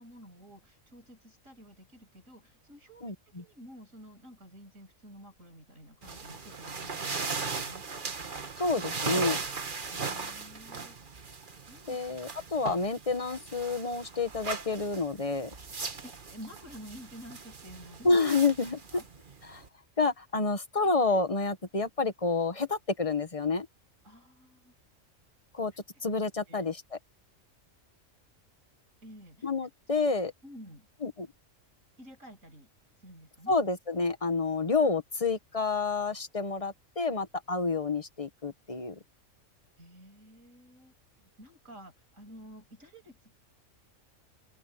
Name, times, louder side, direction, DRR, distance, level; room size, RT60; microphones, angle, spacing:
voice 1, 0.0-3.1 3.4-7.8 9.9-11.0 11.7-12.2 16.0-18.2 18.9-19.4 24.0-24.7 26.5-26.6 29.0-29.5 30.0-30.9 32.0-32.7 33.0-33.6 39.8-43.3, equal, 80° right, 7.3 m, -51 dB
voice 2, 3.0-3.4 8.6-9.4 11.9-15.5 18.0-19.0 19.4-19.6 20.0-23.7 25.5-25.7 26.0-26.8 29.4-30.3 31.0-31.3 33.5-38.9, left 4 dB, 25° left, 1.3 m, -29 dB
sound 1, 6.0-19.7, right 4 dB, 40° right, 1.4 m, -38 dB
open air
omnidirectional pair, 1.3 m